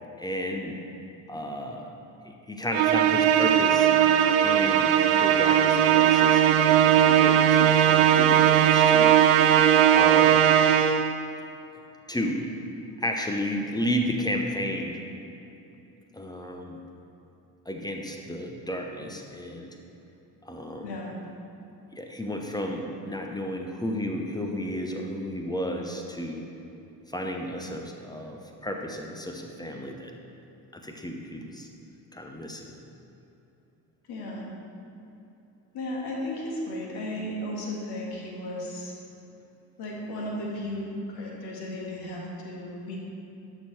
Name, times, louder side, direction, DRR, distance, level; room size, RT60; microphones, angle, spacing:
voice 1, 0.2-0.8 1.3-1.9 2.2-3.9 4.4-9.5 9.9-10.4 12.1-12.5 13.0-15.0 16.1-16.8 17.7-19.8 20.4-21.0 21.9-26.5 27.1-30.1 30.7-31.7 32.1-32.7, equal, 10° left, 2 dB, 0.7 m, -33 dB
Musical instrument, 2.7-11.2, right 10 dB, 55° right, 0.5 m, -19 dB
voice 2, 34.1-34.4 35.7-38.9 39.8-43.0, left 1 dB, 50° left, -3 dB, 1.9 m, -34 dB
11.5 x 6.8 x 3.2 m, 2.9 s
figure-of-eight pair, 50°, 49 cm